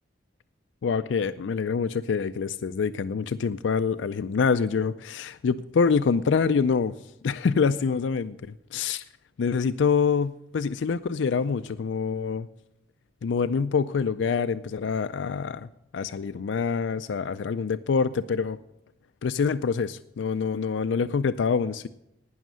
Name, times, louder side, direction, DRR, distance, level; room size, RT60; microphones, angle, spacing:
voice 1, 0.8-6.9 7.2-8.4 8.7-9.0 9.4-12.5 13.2-18.6 19.2-21.9, left 5 dB, 90° left, 12 dB, 0.4 m, -26 dB
18.5 x 6.4 x 6.2 m, 0.85 s
head